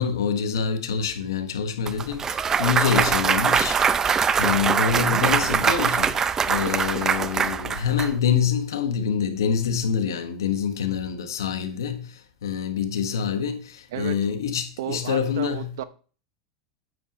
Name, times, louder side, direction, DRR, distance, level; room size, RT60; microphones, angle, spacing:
voice 1, 0.0-3.8 4.4-15.7, left 7 dB, 90° left, 1.4 m, -26 dB
Clapping / Cheering / Applause, 1.9-8.1, right 6 dB, 25° right, 0.6 m, -22 dB
voice 2, 4.9-5.3 13.9-14.3 14.8-15.8, right 13 dB, 75° right, 0.8 m, -33 dB
9.3 x 8.5 x 3.0 m
hypercardioid pair, 110°, 2 cm